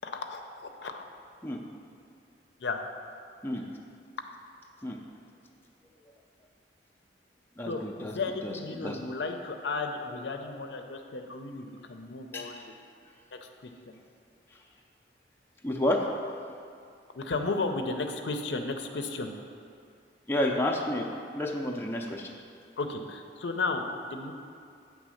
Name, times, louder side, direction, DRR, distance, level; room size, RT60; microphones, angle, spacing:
voice 1, 0.0-1.0 2.6-2.8 7.6-12.8 13.4-13.7 17.1-19.3 22.8-24.3, left 3 dB, 70° left, 5 dB, 0.5 m, -34 dB
voice 2, 7.6-8.1 8.4-8.5 8.8-9.0 12.3-12.5 15.6-16.0 20.3-21.1 21.3-22.3, left 1 dB, 10° left, 0 dB, 0.5 m, -30 dB
8.3 x 3.4 x 6.3 m, 2.4 s
head